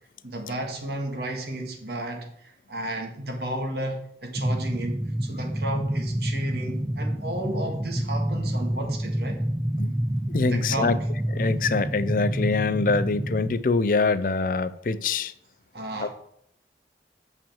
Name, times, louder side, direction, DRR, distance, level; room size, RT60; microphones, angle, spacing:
voice 1, 0.2-9.4 10.5-11.1 15.7-16.1, right 1 dB, 65° right, 1.8 m, -33 dB
sound 1, 4.4-13.5, equal, 10° right, 0.3 m, -28 dB
voice 2, 10.3-11.0 11.3-15.3 16.0-16.1, left 4 dB, 50° left, 0.4 m, -24 dB
7.1 x 5.8 x 7.0 m
head